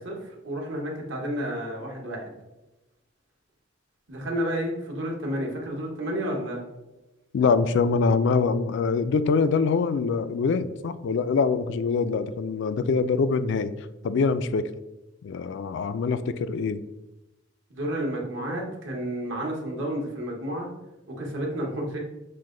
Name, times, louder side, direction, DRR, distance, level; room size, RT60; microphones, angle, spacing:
voice 1, 0.0-2.3 4.1-6.6 17.7-20.7 21.1-22.0, equal, 65° right, -1 dB, 1.2 m, -31 dB
voice 2, 7.3-13.7 14.0-14.7 15.2-16.8, left 5 dB, 65° left, 13 dB, 0.3 m, -24 dB
6.5 x 2.2 x 3.7 m, 0.98 s
head